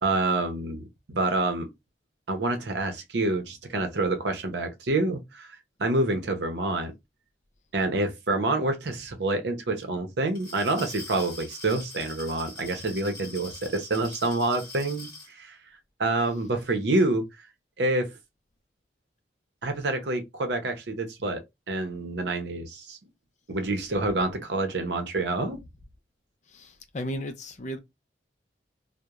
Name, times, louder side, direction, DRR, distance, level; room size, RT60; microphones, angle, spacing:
voice 1, 0.0-1.7 2.3-6.9 7.7-15.6 16.0-17.3 17.8-18.1 19.6-23.0 23.5-25.6, right 2 dB, 70° right, 0.7 m, -27 dB
Glass, 10.3-15.3, left 2 dB, 25° left, 1.2 m, -43 dB
voice 2, 26.5-27.8, equal, 40° left, 0.4 m, -35 dB
2.3 x 2.1 x 2.9 m
head